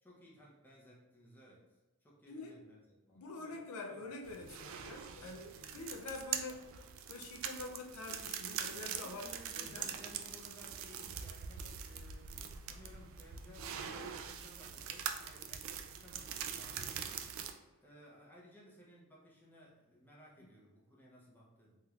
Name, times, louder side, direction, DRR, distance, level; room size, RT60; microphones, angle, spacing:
voice 1, 0.0-3.6 3.9-4.1 5.2-5.9 6.3-6.4 9.0-21.8, equal, 10° left, -5 dB, 0.6 m, -59 dB
voice 2, 2.3-2.6 3.1-6.6 7.1-9.3 9.6-9.9, left 3 dB, 80° left, 1 dB, 0.5 m, -46 dB
sound 1, 4.2-17.5, right 8 dB, 60° right, 0.3 m, -43 dB
3.2 x 3.0 x 2.4 m, 1.2 s
head